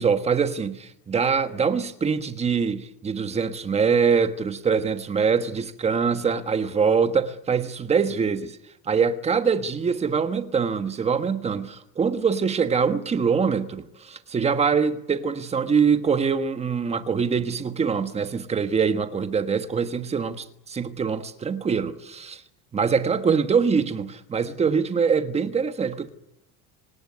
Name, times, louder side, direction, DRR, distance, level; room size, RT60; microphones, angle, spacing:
voice 1, 0.0-8.6 8.8-22.4 22.7-26.1, right 6 dB, 15° right, 1.3 m, -24 dB
25.5 x 18.5 x 9.6 m
cardioid pair, 175°, 38 cm